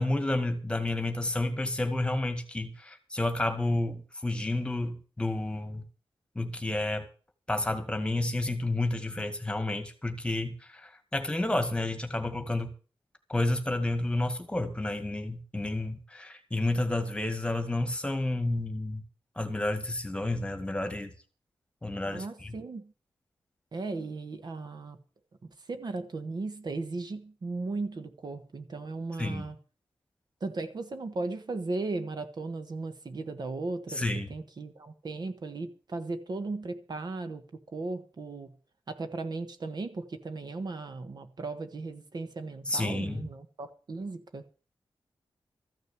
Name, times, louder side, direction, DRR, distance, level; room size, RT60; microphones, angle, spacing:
voice 1, 0.0-5.8 6.4-7.1 7.5-12.7 13.3-19.0 19.4-21.1 21.8-22.6 29.2-29.5 33.9-34.3 42.7-43.3, left 2 dB, 10° left, 1.9 m, -30 dB
voice 2, 22.1-22.9 23.7-25.0 25.4-29.5 30.4-34.0 34.3-38.5 38.9-44.4, right 3 dB, 50° right, 1.4 m, -36 dB
14.0 x 6.4 x 9.6 m
wide cardioid pair, 155°, 9 cm